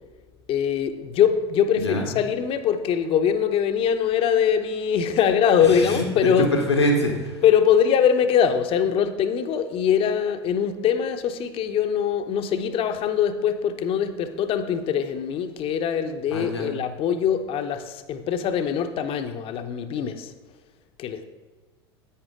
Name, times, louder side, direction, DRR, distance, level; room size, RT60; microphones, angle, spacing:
voice 1, 0.5-6.5 7.4-20.3 21.0-21.2, left 8 dB, 45° left, 8 dB, 0.8 m, -22 dB
voice 2, 5.7-7.3 16.3-16.7, left 1 dB, 90° left, 1 dB, 1.5 m, -24 dB
10.0 x 8.8 x 3.7 m, 1.3 s
figure-of-eight pair, 75°, 14 cm